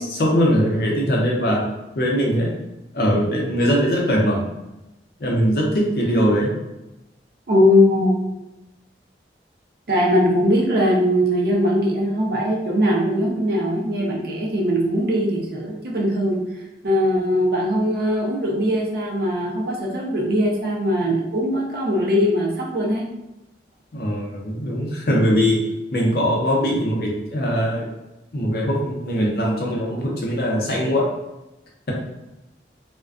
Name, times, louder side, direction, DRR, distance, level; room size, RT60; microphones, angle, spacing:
voice 1, 0.2-1.7 1.9-2.6 2.9-4.4 5.2-6.5 23.9-25.6 25.9-27.9 28.3-31.1, equal, 60° left, -2 dB, 0.5 m, -21 dB
voice 2, 7.5-8.2 9.9-16.4 16.8-23.0, equal, 60° right, -1 dB, 0.5 m, -20 dB
2.4 x 2.1 x 2.4 m, 0.96 s
head